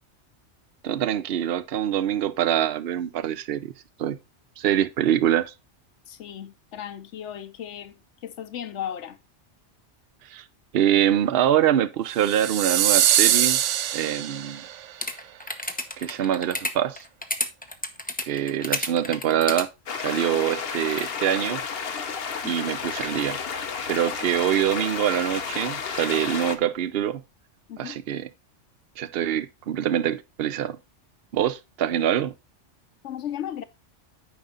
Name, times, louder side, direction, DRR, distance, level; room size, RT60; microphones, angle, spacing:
voice 1, 0.8-3.7 4.0-4.2 4.6-5.5 10.3-10.4 10.7-13.6 13.9-14.6 16.0-17.0 18.3-19.7 20.0-21.6 22.4-23.4 23.9-27.2 27.8-28.3 29.0-30.8 31.3-32.3, right 10 dB, 60° right, 0.8 m, -24 dB
voice 2, 6.1-7.9 8.2-9.2 22.4-22.7 27.7-28.0 33.0-33.6, left 10 dB, 80° left, 1.0 m, -35 dB
sound 1, 12.2-14.7, right 11 dB, 90° right, 0.9 m, -22 dB
sound 2, 15.0-19.6 20.5-21.1, left 1 dB, 10° left, 0.7 m, -30 dB
sound 3, 19.9-26.6, left 6 dB, 55° left, 1.1 m, -31 dB
9.3 x 5.3 x 3.8 m
omnidirectional pair, 1.2 m